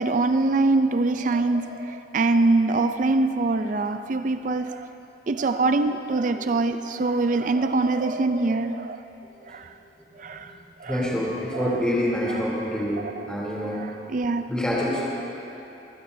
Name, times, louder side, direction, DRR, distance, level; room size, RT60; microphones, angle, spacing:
voice 1, 0.0-4.9 5.3-9.0 9.4-9.7 10.2-10.5 10.8-11.0 11.5-11.8 13.2-13.3 13.7-14.5, right 3 dB, 45° right, 9 dB, 0.4 m, -24 dB
voice 2, 10.8-13.8 14.5-15.0, equal, 5° left, -7 dB, 3.1 m, -26 dB
24.0 x 15.5 x 2.7 m, 3.0 s
head